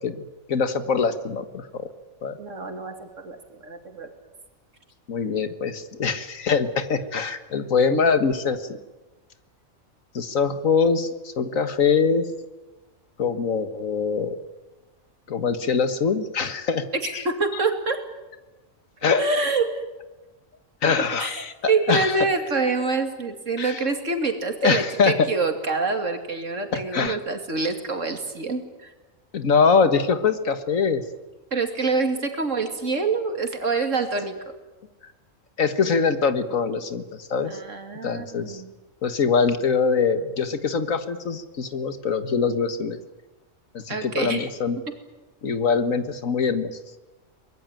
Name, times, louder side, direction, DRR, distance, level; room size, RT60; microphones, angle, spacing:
voice 1, 0.0-1.9 2.2-2.4 5.1-8.8 10.1-12.3 13.2-14.4 15.3-16.9 17.1-17.2 19.0-19.2 20.8-22.2 23.6-23.8 24.6-25.2 26.7-27.2 29.3-31.0 33.7-33.8 35.6-37.6 38.0-38.6 39.0-43.0 43.7-44.8 45.4-46.8, left 5 dB, 80° left, 10 dB, 1.9 m, -23 dB
voice 2, 2.4-4.1 17.2-18.0 19.0-19.8 21.2-28.9 31.5-34.5 37.5-38.7 43.9-44.4, right 4 dB, 70° right, 6 dB, 3.0 m, -26 dB
23.5 x 21.0 x 9.1 m, 1.1 s
omnidirectional pair, 1.4 m